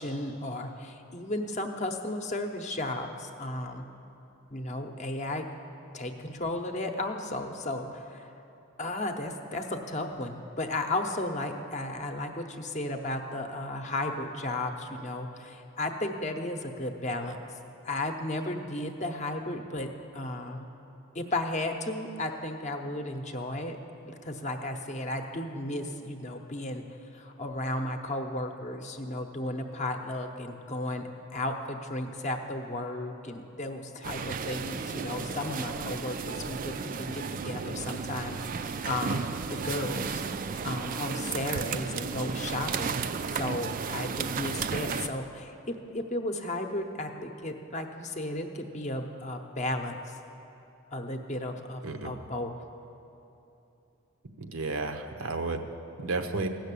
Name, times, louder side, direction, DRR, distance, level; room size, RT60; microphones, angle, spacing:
voice 1, 0.0-3.8 4.5-5.5 5.9-8.3 8.8-17.4 17.8-20.7 21.1-23.8 24.0-40.4 40.6-43.0 43.3-50.2 50.9-52.5, left 1 dB, 35° left, 5 dB, 0.8 m, -34 dB
sound 1, 34.0-45.1, right 5 dB, 40° right, 0.3 m, -34 dB
voice 2, 54.4-55.6 56.0-56.5, right 3 dB, 75° right, 6 dB, 0.8 m, -32 dB
15.5 x 6.5 x 8.3 m, 2.9 s
head